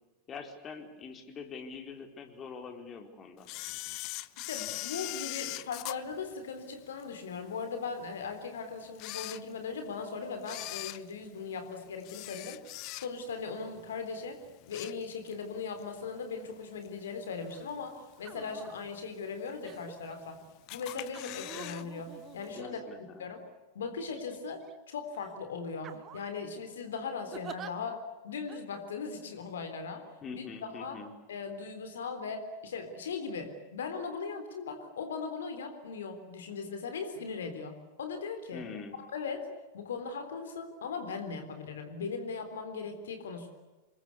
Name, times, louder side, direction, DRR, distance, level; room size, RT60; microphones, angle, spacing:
voice 1, 0.3-3.5 22.5-23.3 30.2-31.1 38.5-38.9, left 5 dB, 25° left, 5 dB, 4.3 m, -44 dB
Camera, 3.4-7.0 7.5-7.6 8.3-8.4 8.9-9.9 10.4-13.4 13.8-14.0 14.4-15.4 15.8-15.9 16.8-16.9 17.5-17.9 18.3-18.4 18.6-18.7 18.9-19.0 19.7-20.3 20.7-21.8 22.1-22.2 22.5-22.6, left 20 dB, 40° left, 0.8 m, -41 dB
voice 2, 4.5-12.6 12.9-14.4 14.7-20.4 20.7-23.4 23.7-30.0 30.3-31.0 31.3-37.7 38.0-38.7 39.0-39.5 39.7-43.5, left 5 dB, 65° left, 7 dB, 3.6 m, -39 dB
sound 1, 17.5-17.7 18.2-18.8 19.6-20.2 21.1-23.2 24.0-24.7 25.1-25.3 25.8-26.4 27.3-27.7 28.5-28.6, right 9 dB, 30° right, 1.7 m, -48 dB
27.5 x 23.0 x 8.4 m, 1.2 s
figure-of-eight pair, 90°, 0 cm